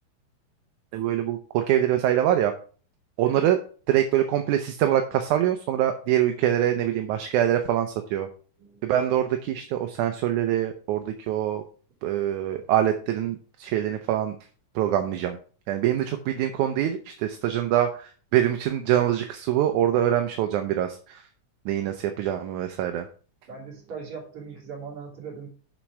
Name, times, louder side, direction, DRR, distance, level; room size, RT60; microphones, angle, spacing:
voice 1, 0.9-2.5 3.2-3.6 3.9-8.3 8.8-11.6 12.0-14.4 14.8-15.4 15.7-21.2 21.7-23.1, right 11 dB, 75° right, 6 dB, 2.0 m, -24 dB
voice 2, 8.6-8.9 23.5-25.5, right 5 dB, 45° right, -2 dB, 3.6 m, -40 dB
7.4 x 6.3 x 4.7 m, 0.40 s
omnidirectional pair, 3.8 m